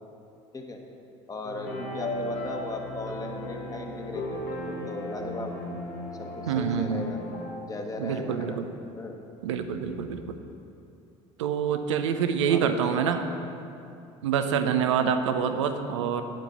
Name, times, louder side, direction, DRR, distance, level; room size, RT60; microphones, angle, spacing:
voice 1, 1.3-5.7 6.1-7.2 7.6-8.6 8.9-9.1 12.5-13.2, left 2 dB, 25° left, 3 dB, 1.6 m, -37 dB
sound 1, 1.4-7.5, left 1 dB, 70° left, 2.2 m, -36 dB
voice 2, 6.5-7.1 8.0-8.7 9.4-10.4 11.4-13.2 14.2-16.2, right 7 dB, 85° right, 8 dB, 0.7 m, -26 dB
9.0 x 7.5 x 7.1 m, 2.7 s
hypercardioid pair, 65°, 15 cm